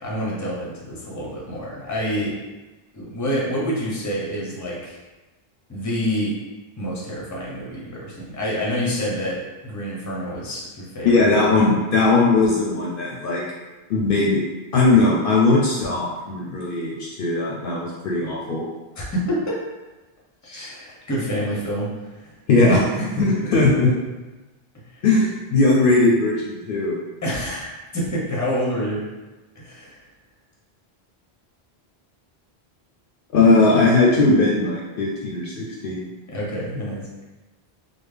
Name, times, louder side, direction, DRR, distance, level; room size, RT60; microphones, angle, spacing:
voice 1, 0.0-2.4 2.9-5.0 5.7-6.3 6.8-9.4 9.6-11.4 19.0-19.5 20.5-22.4 22.7-23.6 24.9-25.0 27.2-29.0 29.6-30.0 36.3-37.0, equal, 20° left, -4 dB, 0.6 m, -27 dB
voice 2, 11.0-13.4 13.9-14.4 14.7-18.6 20.4-20.7 22.5-22.8 23.2-23.9 25.0-26.9 33.3-36.0, left 3 dB, 65° left, -3 dB, 0.7 m, -19 dB
3.5 x 2.1 x 3.3 m, 1.1 s
omnidirectional pair, 1.1 m